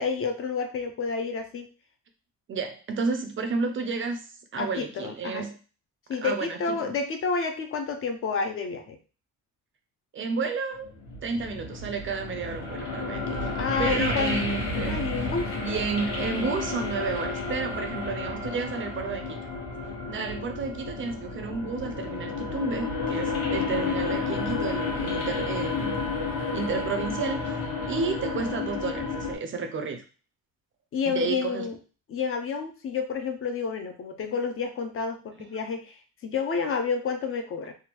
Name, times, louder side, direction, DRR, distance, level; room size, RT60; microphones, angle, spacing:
voice 1, 0.0-1.7 4.6-5.5 6.1-9.0 13.5-14.4 14.7-15.5 30.9-31.7 32.1-37.7, left 5 dB, 40° left, 6 dB, 0.4 m, -30 dB
voice 2, 2.5-4.2 4.5-5.6 6.2-6.9 10.1-10.9 11.2-13.5 13.8-15.3 15.6-19.4 20.1-26.0 26.5-27.6 27.9-30.0 31.1-31.7 35.4-35.5, right 4 dB, 40° right, 7 dB, 0.4 m, -31 dB
sound 1, 10.8-29.3, left 3 dB, 65° left, 1.2 m, -31 dB
3.4 x 2.2 x 2.9 m, 0.36 s
cardioid pair, 155°, 34 cm